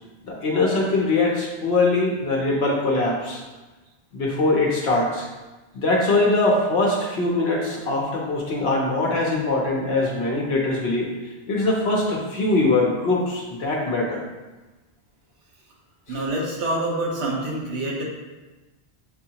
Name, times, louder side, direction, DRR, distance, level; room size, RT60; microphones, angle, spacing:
voice 1, 0.2-3.4 4.1-5.3 5.7-11.1 11.5-14.2 16.1-16.2, left 2 dB, 70° left, -3 dB, 1.0 m, -22 dB
voice 2, 16.1-18.0, right 1 dB, 80° right, -3 dB, 1.3 m, -26 dB
6.6 x 2.7 x 2.8 m, 1.2 s
omnidirectional pair, 1.1 m